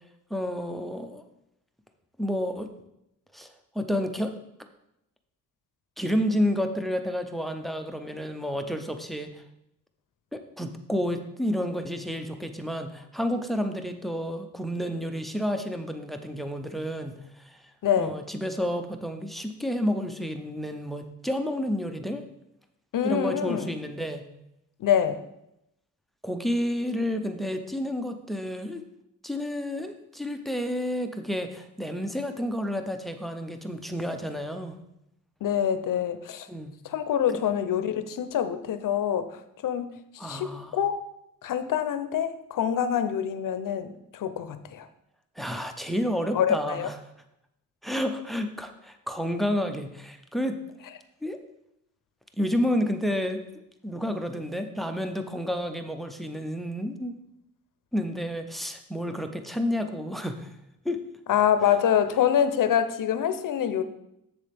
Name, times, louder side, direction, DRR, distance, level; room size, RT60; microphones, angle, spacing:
voice 1, 0.3-1.2 2.2-2.7 3.3-3.5 3.7-4.3 6.0-9.3 10.3-17.5 18.0-22.2 23.0-24.3 26.2-28.8 29.2-34.8 36.5-36.8 37.3-37.4 40.2-40.8 45.4-47.0 47.8-50.6 51.2-51.4 52.4-53.4 53.8-57.2 57.9-60.5 60.8-61.0, equal, ahead, 7 dB, 0.5 m, -30 dB
voice 2, 17.8-18.2 22.9-23.7 24.8-25.2 35.4-36.5 36.8-41.0 41.4-44.9 46.3-46.9 61.3-63.8, left 9 dB, 70° left, 11 dB, 0.6 m, -26 dB
7.5 x 7.1 x 3.4 m, 0.82 s
wide cardioid pair, 165°, 34 cm